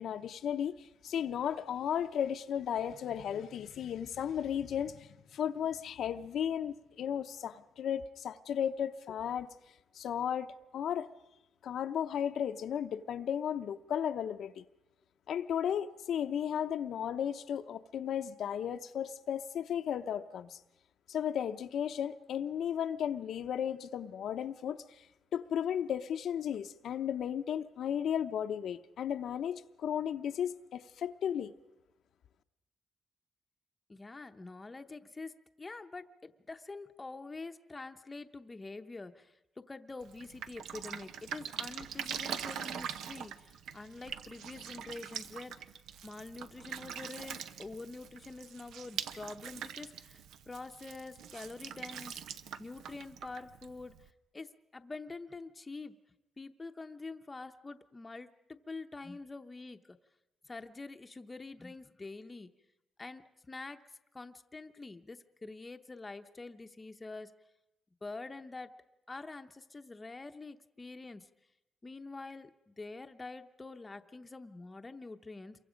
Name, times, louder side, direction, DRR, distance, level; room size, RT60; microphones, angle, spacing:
voice 1, 0.0-9.5 9.9-11.1 11.6-14.6 15.3-20.6 21.1-25.0 25.3-31.5, left 9 dB, 70° left, 0.7 m, -35 dB
voice 2, 33.9-45.7 46.0-52.2 52.6-56.0 56.4-60.0 60.4-62.5 63.0-63.8 64.1-67.3 68.0-68.7 69.1-71.3 71.8-75.6, left 3 dB, 20° left, 0.8 m, -46 dB
Drip, 40.0-54.1, right 8 dB, 90° right, 0.8 m, -43 dB
28.0 x 23.5 x 5.1 m
cardioid pair, 130°, 0 cm